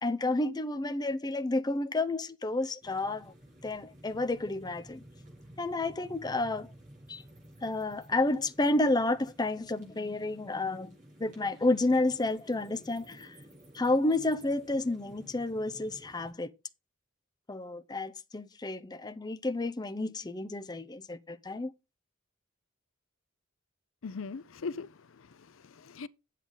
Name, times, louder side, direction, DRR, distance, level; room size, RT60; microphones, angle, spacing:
voice 1, 0.0-3.3 3.6-5.0 5.6-6.7 7.1-7.2 7.6-13.4 13.7-16.5 17.5-21.7, left 2 dB, 20° left, 0.6 m, -30 dB
sound 1, 2.8-16.3, right 1 dB, 40° right, 7.3 m, -54 dB
voice 2, 24.0-26.1, left 4 dB, 70° left, 0.6 m, -40 dB
8.9 x 8.3 x 3.8 m
head